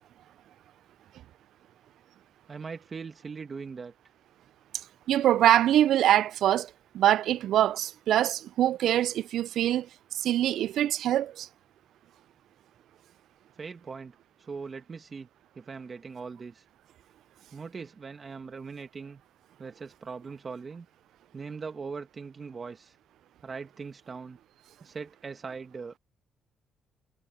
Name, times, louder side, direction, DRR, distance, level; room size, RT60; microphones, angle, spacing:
voice 1, 2.5-3.9 13.6-14.1 14.4-15.3 15.6-16.6 17.5-19.2 19.6-20.9 21.3-23.0 23.4-24.4 24.8-26.0, right 5 dB, 40° right, 1.8 m, -40 dB
voice 2, 5.1-9.9 10.1-11.5, right 12 dB, 75° right, 0.3 m, -24 dB
cardioid pair, 90°, 0 cm